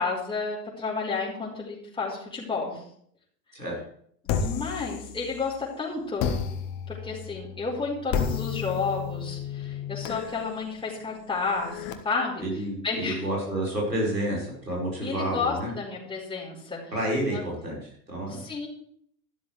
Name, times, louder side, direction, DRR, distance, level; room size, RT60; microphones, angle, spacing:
voice 1, 0.0-2.8 4.4-6.3 6.9-12.4 12.8-13.3 15.0-16.9 17.3-17.4 18.3-18.7, left 4 dB, 10° left, -5 dB, 4.4 m, -31 dB
sound 1, 4.3-5.6 6.2-11.9, left 7 dB, 45° left, 1.5 m, -32 dB
voice 2, 12.4-15.7 16.9-17.8 18.1-18.4, right 1 dB, 90° right, -5 dB, 5.3 m, -29 dB
13.0 x 12.5 x 3.4 m, 0.64 s
figure-of-eight pair, 80°, 48 cm